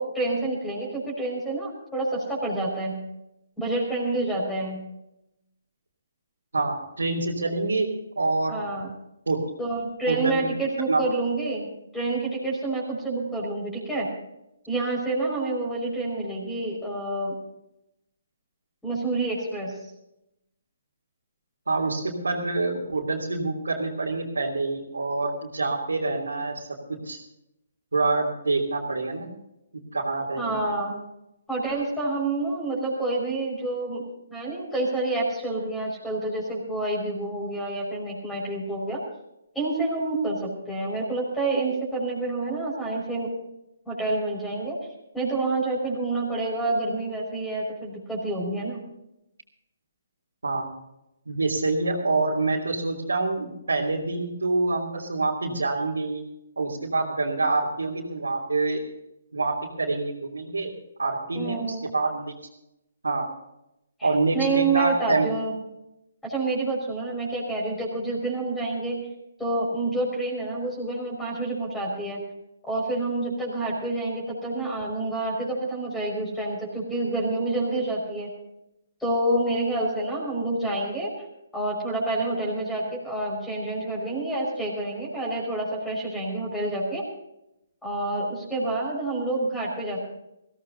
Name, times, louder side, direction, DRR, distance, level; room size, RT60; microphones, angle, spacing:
voice 1, 0.0-3.0 3.6-4.8 8.5-8.9 9.6-11.7 11.9-14.1 14.7-17.4 18.8-19.8 30.4-31.0 31.5-39.0 39.5-43.3 43.9-44.8 45.1-48.8 61.3-61.8 64.0-65.5 66.2-69.0 69.4-72.2 72.6-78.3 79.0-81.1 81.5-87.0 87.8-90.0, right 2 dB, 5° left, -2 dB, 5.6 m, -28 dB
voice 2, 6.5-7.9 8.1-8.6 9.3-9.4 10.1-10.5 10.9-11.0 21.7-27.2 27.9-29.3 29.9-30.7 50.4-50.7 51.3-56.2 56.6-58.8 59.3-60.7 61.0-62.3 63.0-63.3 64.0-65.3, right 3 dB, 80° right, -4 dB, 3.3 m, -26 dB
22.5 x 16.5 x 2.8 m, 0.84 s
figure-of-eight pair, 140°, 0 cm